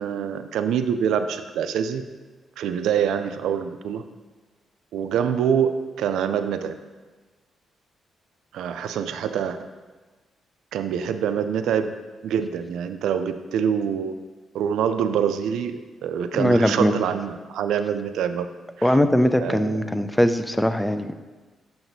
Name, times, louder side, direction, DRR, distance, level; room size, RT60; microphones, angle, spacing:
voice 1, 0.0-2.0 2.6-4.0 4.9-6.8 8.5-9.6 10.7-11.9 12.2-14.2 14.5-18.5 18.8-19.0 19.4-19.8, right 8 dB, 85° right, 10 dB, 0.3 m, -25 dB
voice 2, 16.3-16.9 18.8-21.1, equal, 5° left, 10 dB, 0.3 m, -20 dB
7.0 x 5.9 x 2.7 m, 1.3 s
cardioid pair, 85°, 0 cm